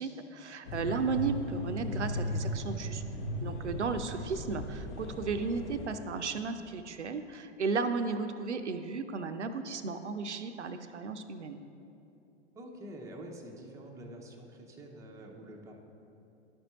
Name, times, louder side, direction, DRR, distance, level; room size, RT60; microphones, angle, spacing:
voice 1, 0.0-3.0 3.4-11.6, right 4 dB, 80° right, 8 dB, 0.5 m, -34 dB
sound 1, 0.7-5.9, equal, 45° left, 0.8 m, -37 dB
voice 2, 12.5-15.7, right 1 dB, 10° right, 1 dB, 0.6 m, -47 dB
11.0 x 5.2 x 3.0 m, 2.8 s
figure-of-eight pair, 95°, 34 cm